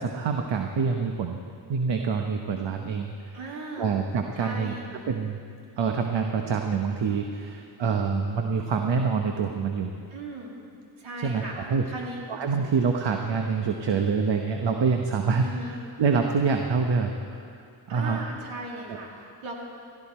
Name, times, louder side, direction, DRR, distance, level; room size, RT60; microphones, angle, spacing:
voice 1, 0.0-1.4 1.7-4.7 5.1-5.4 5.8-9.9 11.2-17.5 17.9-18.2 18.9-19.0, right 5 dB, 65° right, 4 dB, 1.1 m, -26 dB
voice 2, 3.3-3.9 4.4-5.0 10.1-10.6 11.0-11.6 11.9-12.2 15.4-15.8 17.9-19.6, right 2 dB, 85° right, -1 dB, 2.6 m, -37 dB
17.0 x 14.5 x 4.4 m, 2.4 s
cardioid pair, 65°, 47 cm